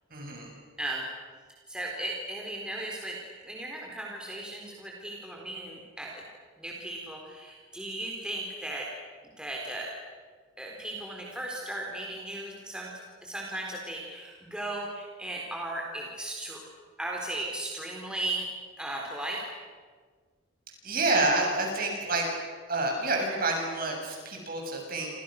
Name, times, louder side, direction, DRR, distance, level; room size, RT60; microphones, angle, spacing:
voice 1, 0.1-0.5 20.8-22.3 22.7-25.1, right 2 dB, 45° right, 1 dB, 7.5 m, -28 dB
voice 2, 1.7-6.2 6.6-8.9 9.4-9.9 10.6-12.9 13.2-16.6 17.0-18.5 18.8-19.4, right 1 dB, 5° right, -2 dB, 4.1 m, -36 dB
29.0 x 28.5 x 6.6 m, 1.6 s
head